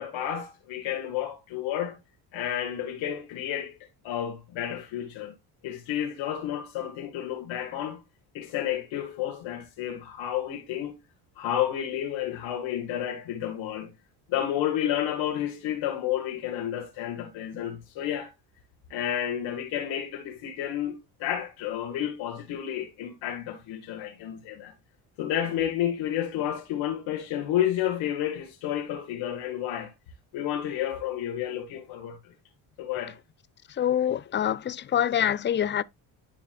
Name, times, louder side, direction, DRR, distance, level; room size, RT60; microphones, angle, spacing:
voice 1, 0.0-2.0 2.3-3.8 4.0-5.3 5.6-8.0 8.3-11.0 11.4-13.9 14.3-18.3 18.9-24.7 25.2-29.9 30.3-32.3 32.8-33.2, left 11 dB, 70° left, 1.8 m, -31 dB
voice 2, 33.8-35.8, left 10 dB, 25° left, 0.4 m, -25 dB
10.5 x 5.0 x 2.3 m
supercardioid pair, 75°, 47 cm